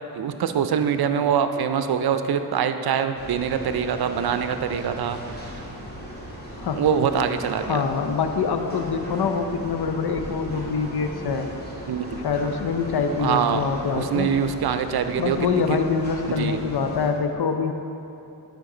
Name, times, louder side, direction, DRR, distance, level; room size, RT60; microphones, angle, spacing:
voice 1, 0.1-5.5 6.7-7.8 11.9-12.2 13.2-13.6 14.0-15.4 16.3-16.6, right 7 dB, 65° right, 9 dB, 0.5 m, -24 dB
sound 1, 3.1-17.1, equal, 25° left, 1.9 m, -37 dB
voice 2, 7.6-11.5 12.2-14.3 15.2-17.7, left 5 dB, 70° left, 6 dB, 0.7 m, -25 dB
11.0 x 5.1 x 3.8 m, 2.8 s
cardioid pair, 60°, 40 cm